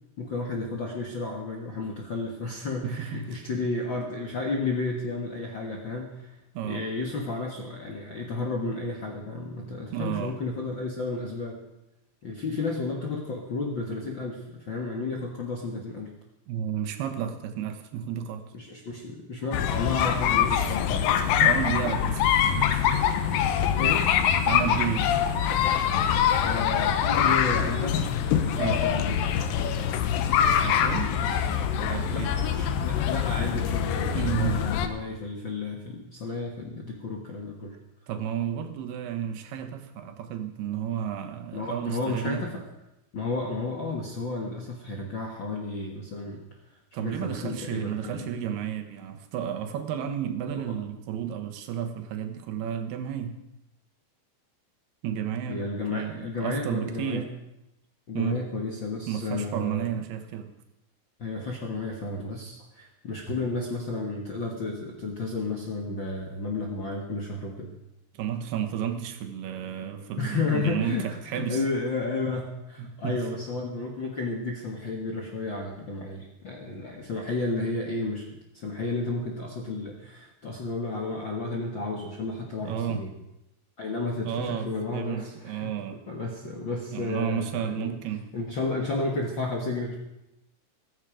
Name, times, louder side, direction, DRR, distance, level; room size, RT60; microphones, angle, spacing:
voice 1, 0.2-6.4 6.6-11.6 12.2-16.1 18.5-21.2 22.9-23.0 23.8-24.4 26.0-29.2 30.9-31.4 32.0-37.8 41.5-42.6 43.1-46.4 47.0-48.3 55.5-57.2 58.1-60.0 61.2-67.7 70.2-78.2 78.5-83.1 83.8-85.7 86.1-88.0 88.3-89.9, left 3 dB, 55° left, 0 dB, 1.3 m, -32 dB
voice 2, 2.8-3.3 6.6-6.9 9.9-10.4 16.5-18.5 21.4-22.9 24.5-25.1 28.6-28.8 30.4-31.2 31.8-32.3 34.1-34.6 38.1-42.4 46.9-53.4 55.0-57.3 58.1-58.4 59.1-60.5 68.2-71.6 72.8-73.2 82.7-83.0 84.3-86.0 86.9-88.3, right 9 dB, 90° right, 6 dB, 3.3 m, -32 dB
sound 1, 19.5-34.9, left 9 dB, 75° left, 2.5 m, -24 dB
14.5 x 14.5 x 5.0 m, 0.90 s
omnidirectional pair, 4.4 m